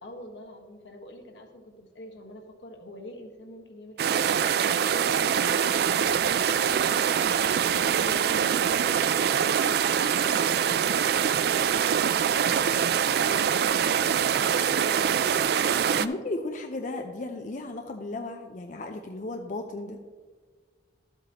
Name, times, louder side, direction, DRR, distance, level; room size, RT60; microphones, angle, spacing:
voice 1, 0.0-6.9 7.3-15.3, equal, 85° left, 2 dB, 1.4 m, -45 dB
sound 1, 4.0-16.1, right 8 dB, 60° right, 0.3 m, -24 dB
voice 2, 16.0-20.0, left 2 dB, 45° left, 5 dB, 0.5 m, -35 dB
12.0 x 7.9 x 2.9 m, 1.5 s
head